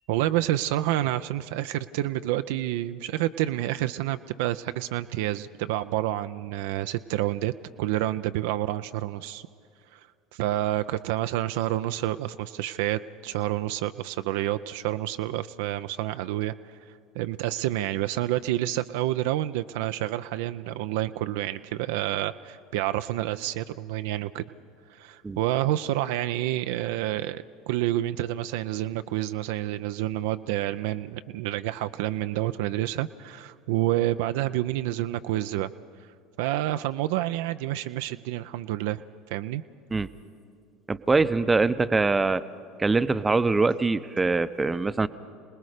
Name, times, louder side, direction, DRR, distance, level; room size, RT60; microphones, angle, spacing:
voice 1, 0.1-7.5 7.8-9.5 9.9-16.8 17.2-24.5 24.9-35.7 36.4-39.0 39.3-39.6, right 14 dB, 70° right, 10 dB, 0.4 m, -28 dB
voice 2, 40.9-42.4 42.8-45.1, right 3 dB, 20° right, 13 dB, 0.7 m, -23 dB
27.0 x 19.5 x 5.0 m, 2.3 s
hypercardioid pair, 70°, 0 cm